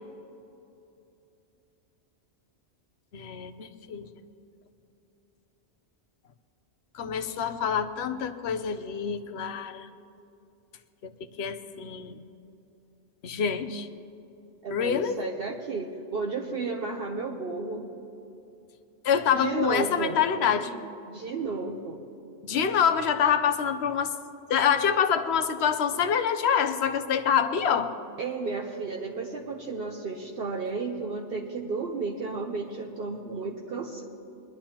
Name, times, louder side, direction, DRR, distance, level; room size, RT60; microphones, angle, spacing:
voice 1, 3.1-4.1 6.9-9.9 11.0-11.1 11.4-12.2 13.2-13.9 14.7-15.2 19.0-20.8 22.4-24.1 24.5-27.9, left 7 dB, 70° left, 10 dB, 1.0 m, -26 dB
voice 2, 14.6-17.8 19.3-20.2 21.1-22.0 28.2-34.0, right 4 dB, 60° right, 1 dB, 1.0 m, -33 dB
22.5 x 11.5 x 2.9 m, 2.8 s
omnidirectional pair, 1.2 m